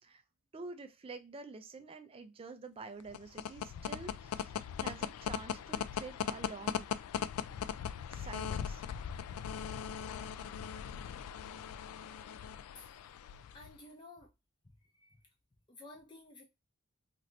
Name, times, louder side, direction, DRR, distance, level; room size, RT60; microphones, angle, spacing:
voice 1, 0.5-6.9 8.1-8.8, right 3 dB, 25° right, 0.4 m, -48 dB
sound 1, 3.0-13.8, left 8 dB, 85° left, 0.3 m, -39 dB
voice 2, 12.8-14.3 14.6-14.7 15.0-15.2 15.7-16.4, left 2 dB, 20° left, 0.6 m, -54 dB
2.8 x 2.5 x 3.1 m
head